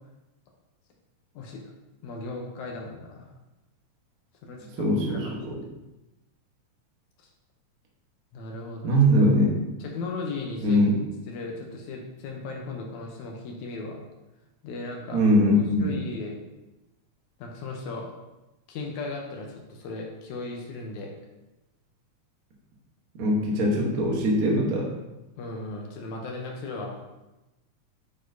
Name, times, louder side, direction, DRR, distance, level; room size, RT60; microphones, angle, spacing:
voice 1, 2.0-3.3 4.4-5.4 8.3-9.0 9.8-10.8 11.3-14.0 14.6-15.2 15.8-16.4 17.4-18.1 18.7-21.1 25.4-27.0, left 3 dB, 80° left, 1 dB, 2.2 m, -36 dB
voice 2, 4.8-5.6 8.8-9.5 10.6-10.9 15.1-15.9 23.2-24.9, equal, 70° right, -2 dB, 0.8 m, -21 dB
9.5 x 4.1 x 2.7 m, 1.0 s
omnidirectional pair, 3.4 m